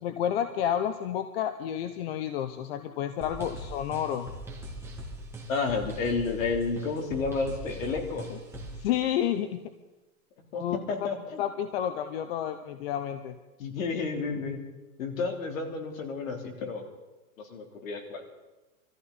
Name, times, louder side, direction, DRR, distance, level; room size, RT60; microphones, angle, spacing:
voice 1, 0.0-4.3 8.8-9.6 10.5-10.8 11.4-13.4, left 10 dB, 45° left, 10 dB, 0.8 m, -30 dB
sound 1, 3.2-8.8, right 1 dB, 5° right, 2.2 m, -41 dB
voice 2, 5.5-8.3 10.5-11.4 13.6-14.6 15.0-16.8 17.5-18.2, left 4 dB, 65° left, 2 dB, 3.5 m, -31 dB
23.0 x 14.5 x 4.1 m, 1.1 s
hypercardioid pair, 145°, 43 cm